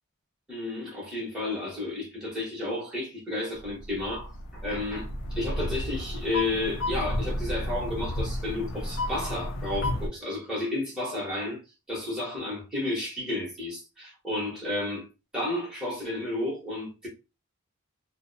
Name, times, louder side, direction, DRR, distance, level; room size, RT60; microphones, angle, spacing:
voice 1, 0.5-11.6 11.9-15.1 15.3-17.1, left 2 dB, 5° right, 0.9 m, -32 dB
sound 1, 3.5-10.1, left 1 dB, 65° left, 0.5 m, -32 dB
2.5 x 2.0 x 2.5 m
head